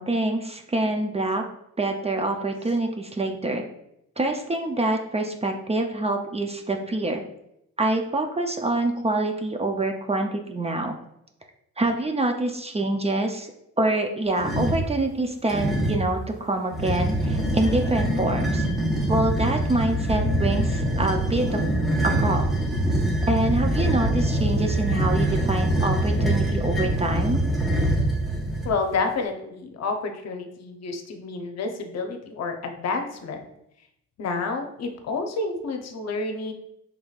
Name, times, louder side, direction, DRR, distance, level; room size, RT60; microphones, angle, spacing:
voice 1, 0.0-1.4 1.8-3.6 4.2-7.2 7.8-10.9 11.8-13.5 13.8-18.7 19.1-21.6 22.2-22.5 23.3-27.4, right 2 dB, 20° right, 4 dB, 0.5 m, -26 dB
sound 1, 14.4-14.9 15.5-16.1 16.7-28.7, right 1 dB, ahead, 1.1 m, -24 dB
voice 2, 28.6-33.4 34.2-36.5, left 3 dB, 60° left, 5 dB, 0.8 m, -29 dB
5.0 x 3.5 x 2.4 m, 0.78 s
cardioid pair, 90°, 30 cm